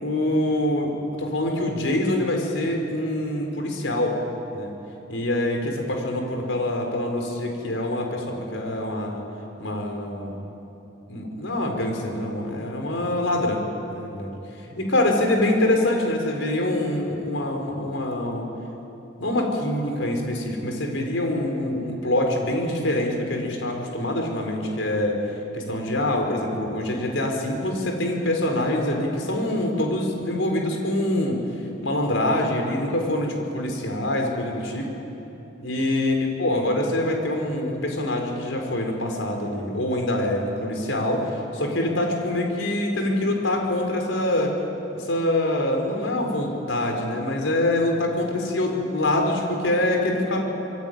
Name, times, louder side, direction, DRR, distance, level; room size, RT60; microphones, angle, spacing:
voice 1, 0.0-4.2 4.5-4.7 5.1-9.2 9.6-10.3 11.1-13.6 13.9-14.3 14.7-18.5 19.2-25.2 25.5-31.4 31.8-34.9 35.6-44.5 45.0-50.4, left 1 dB, 85° left, 2 dB, 4.7 m, -25 dB
25.5 x 23.5 x 9.4 m, 3.0 s
head